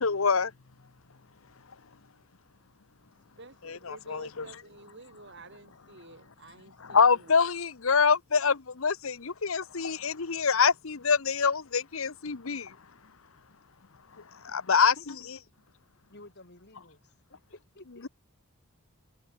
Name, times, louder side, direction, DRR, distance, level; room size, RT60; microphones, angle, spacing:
voice 1, 0.0-0.5 3.6-4.5 6.9-12.7 14.4-15.1, left 5 dB, 70° left, 1.0 m, -25 dB
voice 2, 3.4-7.4, right 2 dB, 55° right, 4.6 m, -51 dB
voice 3, 16.1-17.0 17.3-18.1, left 1 dB, 50° left, 4.5 m, -52 dB
head